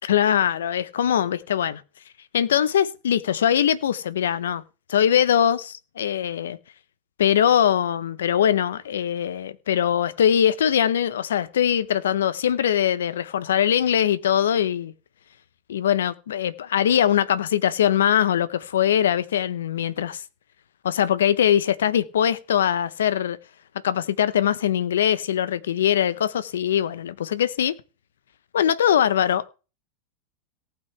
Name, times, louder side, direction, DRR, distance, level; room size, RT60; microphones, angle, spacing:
voice 1, 0.0-1.8 2.3-4.6 4.9-6.6 7.2-14.9 15.7-20.2 20.8-23.4 23.8-27.8 28.5-29.5, left 9 dB, 90° left, 0.9 m, -22 dB
18.0 x 6.1 x 3.4 m
hypercardioid pair, 115°, 0 cm